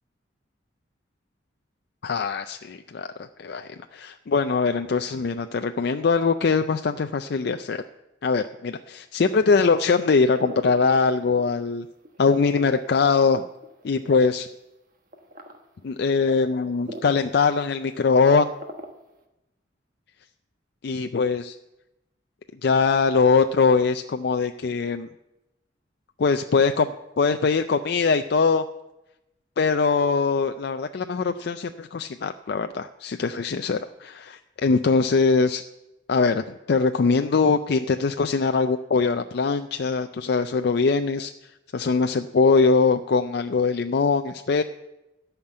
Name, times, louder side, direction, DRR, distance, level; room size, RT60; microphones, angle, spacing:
voice 1, 2.0-7.8 8.2-11.9 12.2-13.4 13.8-14.5 15.8-18.5 20.8-21.6 22.6-25.1 26.2-28.6 29.6-35.6 36.1-44.6, left 4 dB, 55° left, 7 dB, 0.4 m, -22 dB
sound 1, 10.3-11.7 12.0-14.3 15.1-15.6 16.1-16.2 16.9-17.3 17.6-17.7 18.0-19.1, right 1 dB, 45° right, 1.3 m, -39 dB
12.5 x 5.9 x 8.6 m, 0.96 s
head